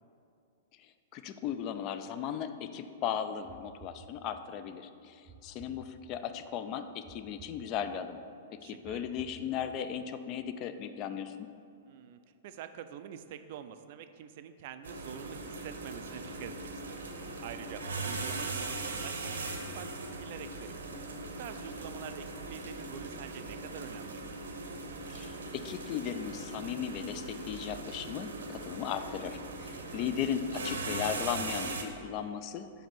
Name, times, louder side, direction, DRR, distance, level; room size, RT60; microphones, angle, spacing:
voice 1, 0.8-8.2 8.6-11.5 25.1-32.7, left 8 dB, 35° left, 10 dB, 0.3 m, -37 dB
sound 1, 3.4-4.6 5.3-6.4 7.0-8.2 8.8-10.0, right 5 dB, 15° right, 0.7 m, -55 dB
voice 2, 8.6-9.1 11.9-17.0 17.4-19.9 20.2-20.8 21.4-24.2 29.7-30.1, right 9 dB, 45° right, 10 dB, 0.3 m, -46 dB
sound 2, 14.8-31.8, right 3 dB, 65° right, 0.7 m, -40 dB
5.2 x 4.9 x 5.8 m, 2.5 s
figure-of-eight pair, 105°, 0 cm